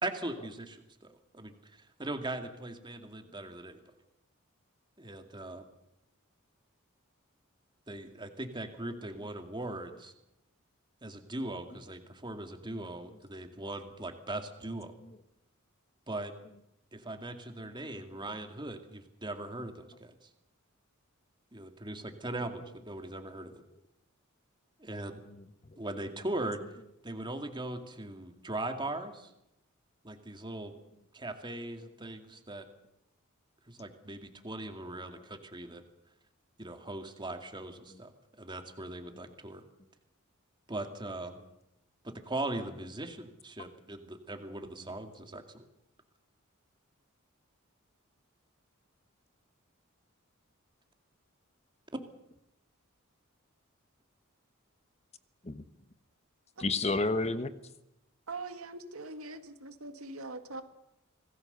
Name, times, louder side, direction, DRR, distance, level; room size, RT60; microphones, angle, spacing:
voice 1, 0.0-3.8 5.0-5.6 7.9-10.1 11.0-14.9 16.1-16.3 16.9-20.3 21.5-23.5 24.8-25.2 25.8-26.6 27.0-29.3 30.0-30.7 31.1-32.7 33.7-35.8 36.6-38.1 38.4-39.6 40.7-41.3 42.0-45.6, right 2 dB, 20° right, 6 dB, 2.2 m, -40 dB
voice 2, 25.3-25.8 39.2-39.3 55.4-55.6 56.6-57.5, left 3 dB, 30° left, 12 dB, 1.1 m, -32 dB
voice 3, 58.3-60.6, right 3 dB, 90° right, 8 dB, 2.0 m, -42 dB
26.0 x 19.0 x 6.8 m, 0.85 s
head